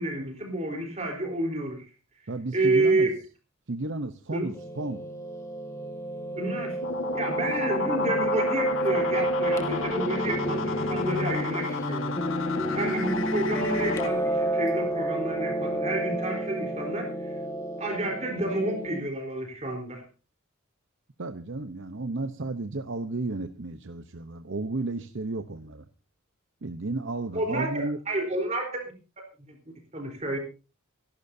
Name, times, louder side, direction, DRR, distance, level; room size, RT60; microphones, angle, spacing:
voice 1, 0.0-1.8 2.5-3.1 4.3-4.5 6.3-6.8 7.1-17.4 17.8-20.0 27.3-28.9 29.5-29.6 29.9-30.4, right 2 dB, 30° right, 2 dB, 4.0 m, -30 dB
voice 2, 2.3-3.1 3.7-5.0 21.2-25.8 26.6-28.0, right 2 dB, 60° right, 9 dB, 0.9 m, -33 dB
Piano, 4.5-19.0, right 1 dB, 15° left, 2.0 m, -30 dB
sound 1, 6.8-14.1, left 4 dB, 65° left, 1.5 m, -32 dB
25.5 x 12.0 x 2.7 m, 0.34 s
head